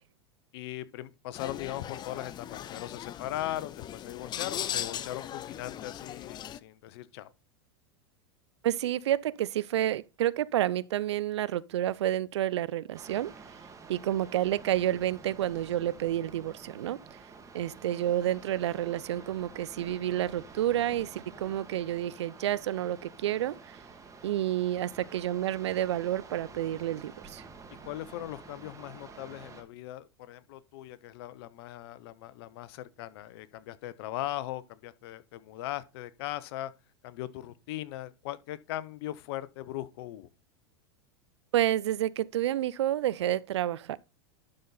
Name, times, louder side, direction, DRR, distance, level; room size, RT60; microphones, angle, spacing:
voice 1, 0.5-7.3 27.8-36.7 37.0-40.3, left 14 dB, 65° left, 0.8 m, -39 dB
sound 1, 1.3-6.6, left 11 dB, 30° left, 0.5 m, -38 dB
voice 2, 8.6-13.3 13.9-17.2 17.5-23.8 24.2-27.5 41.5-44.0, right 12 dB, 85° right, 0.5 m, -29 dB
sound 2, 12.9-29.6, right 4 dB, 20° right, 1.9 m, -49 dB
11.5 x 4.2 x 4.0 m
hypercardioid pair, 105°, 14 cm